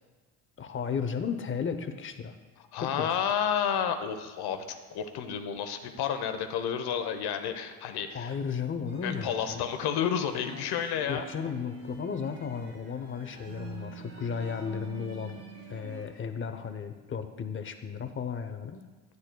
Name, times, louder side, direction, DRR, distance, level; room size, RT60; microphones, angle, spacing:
voice 1, 0.6-2.3 2.8-3.1 8.1-9.7 11.1-15.4 15.7-18.8, left 6 dB, 30° left, 8 dB, 0.7 m, -34 dB
voice 2, 2.6-8.3 9.0-11.3, left 8 dB, 65° left, 7 dB, 0.9 m, -31 dB
sound 1, 8.9-16.0, right 5 dB, 85° right, 2.8 m, -47 dB
10.0 x 9.5 x 2.2 m, 1.3 s
supercardioid pair, 85°, 43 cm